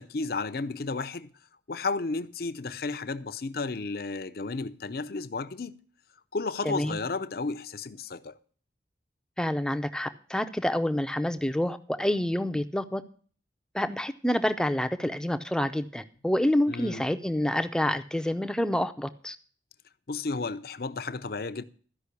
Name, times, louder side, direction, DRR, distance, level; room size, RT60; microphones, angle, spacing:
voice 1, 0.0-1.3 1.7-5.8 6.3-8.4 16.7-17.0 20.1-21.6, left 3 dB, 55° left, 0.6 m, -33 dB
voice 2, 6.6-7.0 9.4-13.0 13.7-19.4, left 1 dB, 5° left, 0.5 m, -28 dB
13.0 x 5.5 x 8.3 m
head